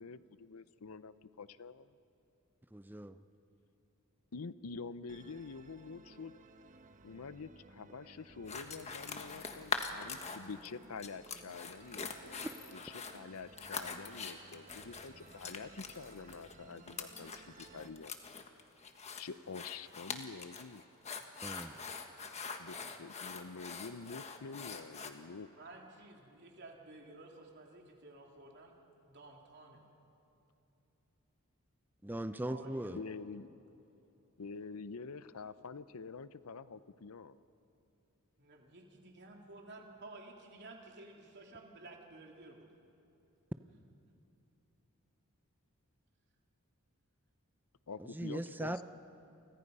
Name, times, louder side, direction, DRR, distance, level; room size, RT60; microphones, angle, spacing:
voice 1, 0.0-1.9 4.3-6.3 7.0-12.5 12.7-18.1 19.2-20.8 22.6-25.5 32.9-33.6 34.4-37.4 47.9-48.8, left 4 dB, 75° left, 15 dB, 0.7 m, -47 dB
voice 2, 2.7-3.2 12.4-12.5 21.4-21.7 32.0-33.0 48.0-48.8, right 1 dB, 10° right, 11 dB, 0.6 m, -39 dB
Musical instrument, 5.1-17.9, right 3 dB, 35° right, 1.1 m, -58 dB
sound 1, 8.5-10.7 11.0-25.1, left 5 dB, 30° left, 1.4 m, -43 dB
voice 3, 25.5-28.7 29.1-29.8 32.4-33.1 38.4-42.7, right 2 dB, 50° right, 0 dB, 3.2 m, -53 dB
30.0 x 25.0 x 5.5 m, 2.9 s
head